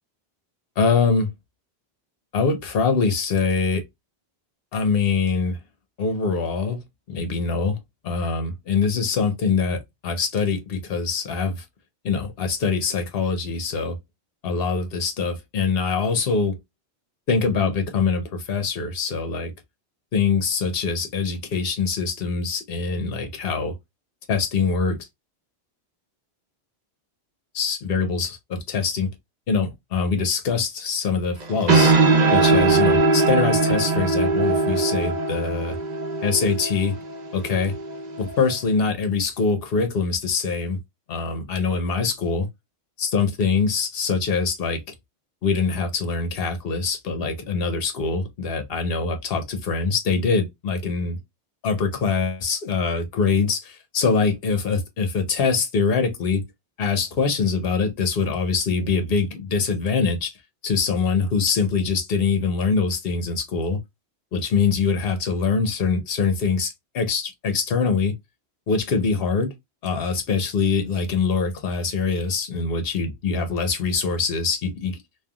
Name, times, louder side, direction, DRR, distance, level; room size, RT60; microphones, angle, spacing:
voice 1, 0.8-1.3 2.3-3.8 4.7-5.6 6.0-6.8 7.1-7.8 8.0-11.6 12.0-13.9 14.4-16.5 17.3-19.5 20.1-23.7 24.3-25.0 27.5-29.1 29.5-31.9 32.3-35.8 36.2-37.0 37.3-37.7 38.2-40.8 41.1-42.5 43.0-44.8 45.4-51.2 51.6-56.4 56.8-60.3 60.6-63.8 64.3-68.1 68.7-69.5 69.8-75.0, left 5 dB, 65° left, 1.0 m, -23 dB
sound 1, 31.4-38.6, right 3 dB, 45° right, 0.8 m, -21 dB
3.3 x 2.3 x 2.3 m
omnidirectional pair, 1.1 m